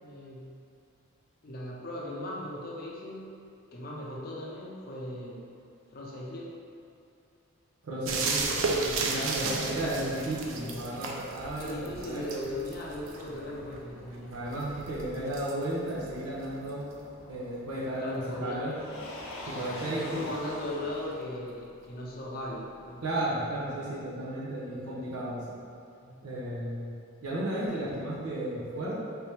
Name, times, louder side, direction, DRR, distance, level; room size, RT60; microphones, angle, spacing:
voice 1, 0.0-0.5 1.4-3.3 3.7-5.5 5.9-6.5 8.1-9.9 10.6-10.9 11.6-14.7 18.0-18.6 19.7-23.1 26.0-26.2, left 1 dB, 45° left, -3 dB, 0.5 m, -38 dB
voice 2, 7.8-8.4 9.0-12.3 14.3-16.8 17.3-18.8 19.5-20.3 23.0-25.4 26.2-26.9 27.2-28.9, right 1 dB, 90° right, -7 dB, 0.8 m, -33 dB
sound 1, 8.0-17.4 19.5-19.6, right 3 dB, 60° right, 0.4 m, -35 dB
Motor vehicle (road), 9.7-23.8, left 1 dB, 85° left, 0.6 m, -48 dB
3.4 x 2.8 x 3.3 m, 2.5 s
head